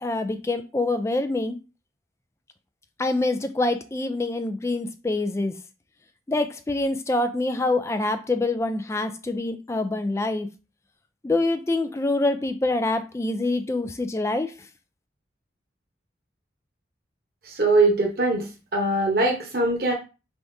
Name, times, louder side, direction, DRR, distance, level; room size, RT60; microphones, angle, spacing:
voice 1, 0.0-1.6 3.0-5.6 6.3-10.5 11.2-14.5, left 2 dB, 15° left, 0.3 m, -25 dB
voice 2, 17.5-18.5 18.7-19.9, right 2 dB, 55° right, 1.0 m, -21 dB
4.6 x 3.5 x 2.6 m
head